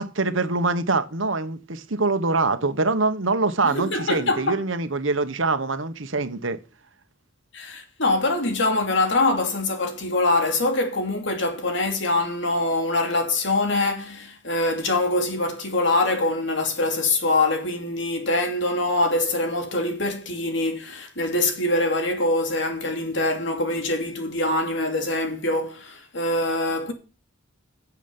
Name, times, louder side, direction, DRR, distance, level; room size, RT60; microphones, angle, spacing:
voice 1, 0.0-6.6, right 3 dB, 80° right, 1.4 m, -24 dB
voice 2, 3.7-4.6 7.5-26.9, left 2 dB, 65° left, 2.9 m, -24 dB
15.5 x 7.4 x 5.5 m
head